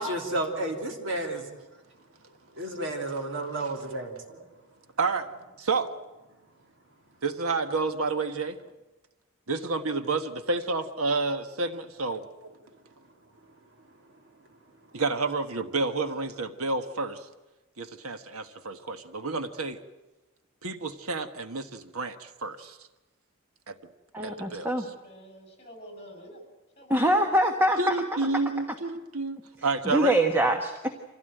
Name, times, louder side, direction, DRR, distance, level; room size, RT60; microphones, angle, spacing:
voice 1, 0.0-1.5 2.6-4.4, right 1 dB, 60° right, 3 dB, 3.3 m, -32 dB
voice 2, 5.0-5.3 5.6-5.9 7.2-8.6 9.5-12.2 14.9-17.3 17.8-19.8 20.6-22.8 24.2-24.7 27.8-30.2, right 3 dB, 85° right, 8 dB, 1.4 m, -30 dB
voice 3, 24.1-24.8 26.9-27.8 29.8-30.9, right 1 dB, 10° right, 4 dB, 1.3 m, -23 dB
voice 4, 25.0-26.4 26.8-27.4, equal, 30° left, 3 dB, 7.1 m, -48 dB
25.5 x 16.5 x 9.1 m, 1.1 s
head